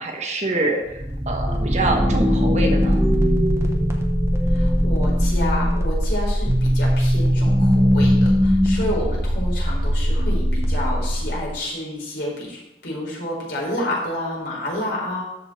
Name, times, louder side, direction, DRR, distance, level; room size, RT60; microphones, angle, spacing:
voice 1, 0.0-3.1, right 2 dB, 40° right, 3 dB, 1.2 m, -25 dB
sound 1, 0.9-11.5, equal, 15° right, 1.1 m, -20 dB
voice 2, 4.5-15.2, left 1 dB, 65° left, -3 dB, 4.2 m, -29 dB
13.5 x 5.3 x 4.3 m, 0.86 s
head